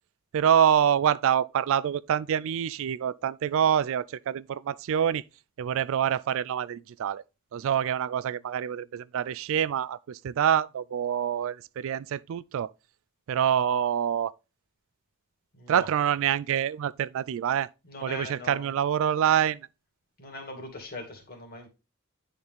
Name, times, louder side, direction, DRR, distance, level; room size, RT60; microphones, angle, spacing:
voice 1, 0.3-5.2 5.6-7.2 7.5-12.7 13.3-14.3 15.7-17.7 18.0-19.7, right 9 dB, 65° right, 0.3 m, -26 dB
voice 2, 15.5-15.9 17.8-18.8 20.2-21.7, left 2 dB, 45° left, 2.3 m, -41 dB
10.5 x 4.1 x 3.6 m
head